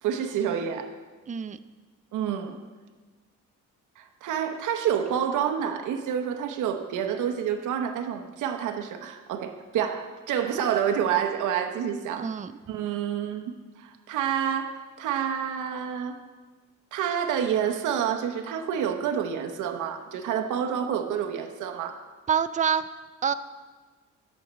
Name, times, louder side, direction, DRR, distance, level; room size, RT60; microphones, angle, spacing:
voice 1, 0.0-0.9 2.1-2.6 4.0-12.3 12.7-13.5 13.8-16.2 16.9-22.0, right 8 dB, 80° right, 6 dB, 0.9 m, -28 dB
voice 2, 1.3-1.6 12.2-12.5 22.3-22.8 23.2-23.3, right 7 dB, 25° right, 12 dB, 0.4 m, -26 dB
8.4 x 6.4 x 7.3 m, 1.3 s
cardioid pair, 90°, 30 cm